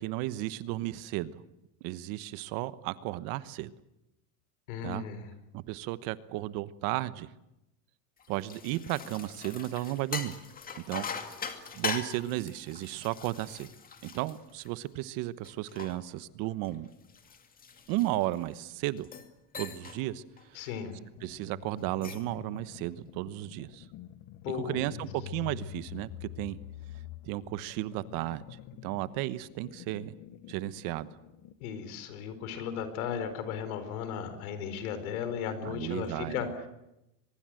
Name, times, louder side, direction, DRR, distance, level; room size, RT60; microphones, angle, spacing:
voice 1, 0.0-1.4 1.8-3.7 4.8-5.0 5.5-7.3 8.3-10.4 10.9-11.1 11.7-13.7 14.0-16.9 17.9-19.1 19.6-20.2 21.2-23.8 24.5-26.6 27.2-28.4 28.8-30.1 30.5-31.1 35.6-36.4, right 16 dB, 55° right, 15 dB, 1.1 m, -34 dB
voice 2, 4.7-5.3 20.5-21.0 24.4-24.9 31.6-36.5, left 7 dB, 80° left, 10 dB, 4.5 m, -35 dB
sound 1, 8.2-15.0 15.4-18.5 19.0-19.3 19.5-20.0 20.4-20.6 21.8-22.3, left 5 dB, 20° left, 2.1 m, -41 dB
sound 2, 21.2-31.6, left 13 dB, 45° left, 1.3 m, -47 dB
23.5 x 22.0 x 7.8 m, 0.90 s
supercardioid pair, 145°, 42 cm